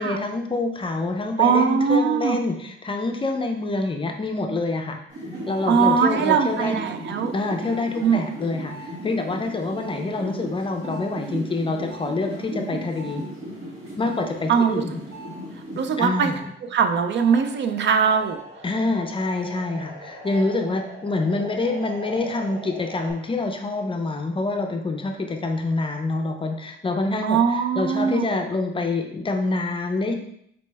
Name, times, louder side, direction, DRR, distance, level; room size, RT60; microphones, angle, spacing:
voice 1, 0.0-5.0 5.5-6.8 7.3-13.2 14.0-15.0 16.0-16.4 18.6-27.4 27.8-30.1, left 2 dB, 25° left, 4 dB, 0.4 m, -26 dB
voice 2, 1.4-2.4 5.7-7.3 8.0-8.3 14.5-14.8 15.8-16.3 16.7-18.4 27.2-28.3, right 6 dB, 60° right, 7 dB, 0.4 m, -21 dB
sound 1, 5.1-16.4 16.7-23.1, right 1 dB, 80° right, 1.5 m, -37 dB
4.1 x 3.2 x 3.3 m, 0.72 s
wide cardioid pair, 145°, 21 cm